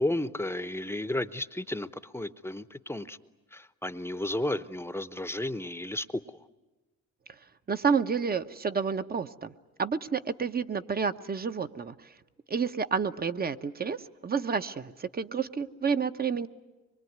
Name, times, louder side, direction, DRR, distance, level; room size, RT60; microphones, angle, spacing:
voice 1, 0.0-3.2 3.5-6.4, left 1 dB, 10° left, 13 dB, 0.9 m, -33 dB
voice 2, 7.7-9.5 9.8-12.1 12.5-16.5, right 6 dB, 30° right, 10 dB, 1.0 m, -30 dB
24.5 x 23.0 x 9.5 m, 1.2 s
cardioid pair, 90°, 30 cm